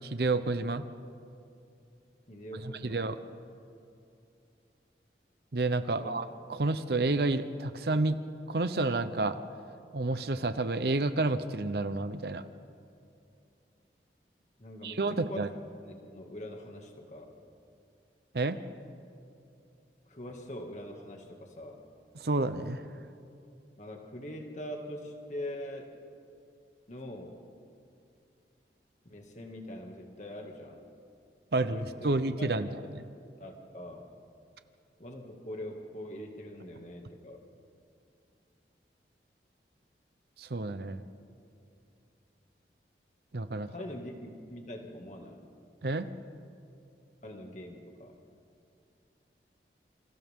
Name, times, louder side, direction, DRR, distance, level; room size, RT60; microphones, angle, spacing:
voice 1, 0.1-0.9 2.6-3.2 5.5-8.2 8.5-9.4 9.9-12.4 14.8-15.5 18.3-18.6 22.2-22.8 31.5-32.7 40.4-41.0 43.3-43.7 45.8-46.1, right 2 dB, 65° right, 10 dB, 0.8 m, -30 dB
voice 2, 2.3-3.0 5.9-6.1 14.6-15.5 15.8-17.3 20.1-21.8 23.8-26.0 26.9-27.4 29.1-30.8 31.5-32.1 32.4-32.6 33.4-34.1 35.0-37.4 43.5-45.5 47.2-48.2, left 1 dB, 40° left, 2 dB, 2.2 m, -43 dB
28.5 x 27.5 x 3.7 m, 2.5 s
head